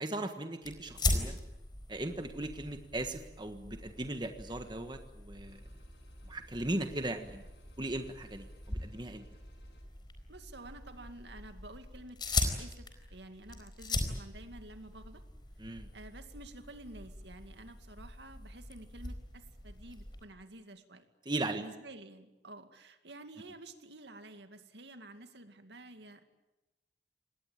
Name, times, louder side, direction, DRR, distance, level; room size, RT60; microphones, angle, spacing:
voice 1, 0.0-1.4 1.9-5.6 6.2-7.4 7.8-9.2 15.6-15.9 21.2-21.6, right 1 dB, 25° right, 7 dB, 1.5 m, -38 dB
sound 1, 0.6-20.3, left 2 dB, 25° left, 4.3 m, -40 dB
sound 2, 5.4-9.8, right 1 dB, 70° left, 5.8 m, -59 dB
voice 2, 10.3-15.2 15.9-21.1 21.5-26.2, right 2 dB, 75° right, 8 dB, 2.3 m, -50 dB
27.0 x 20.0 x 8.9 m, 0.99 s
head